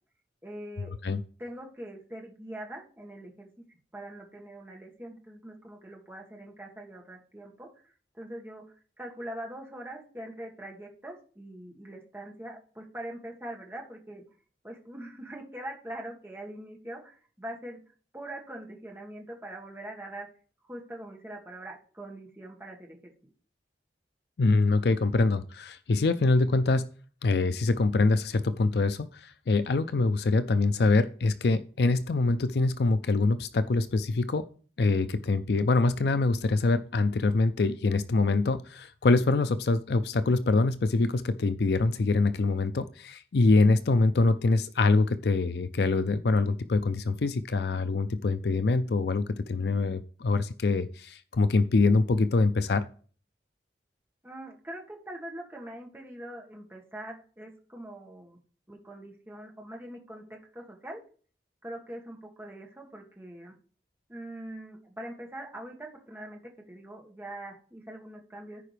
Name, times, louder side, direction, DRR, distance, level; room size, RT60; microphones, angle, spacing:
voice 1, 0.4-0.9 1.4-3.5 3.9-14.2 14.6-17.8 18.1-20.3 20.6-23.1 54.2-58.4 58.7-61.0 61.6-63.5 64.1-68.6, right 1 dB, 15° right, 0 dB, 1.5 m, -43 dB
voice 2, 24.4-26.9 27.2-34.4 34.8-52.8, left 3 dB, 65° left, 12 dB, 0.5 m, -24 dB
14.5 x 4.9 x 3.3 m, 0.42 s
head